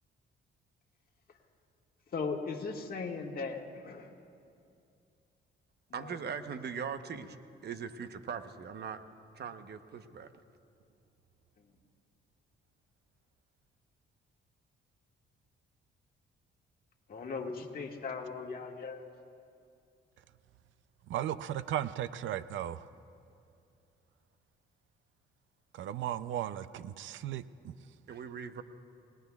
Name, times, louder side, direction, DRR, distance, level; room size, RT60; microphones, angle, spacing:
voice 1, 2.1-4.1 6.0-6.2 17.1-19.0, left 4 dB, 50° left, 1 dB, 1.7 m, -38 dB
voice 2, 5.9-7.4 7.6-9.0 9.3-10.3 28.1-28.6, right 6 dB, 55° right, 9 dB, 0.9 m, -40 dB
voice 3, 21.1-22.9 25.7-27.7, right 11 dB, 75° right, 14 dB, 0.5 m, -36 dB
28.0 x 19.5 x 2.4 m, 2.5 s
cardioid pair, 90°, 20 cm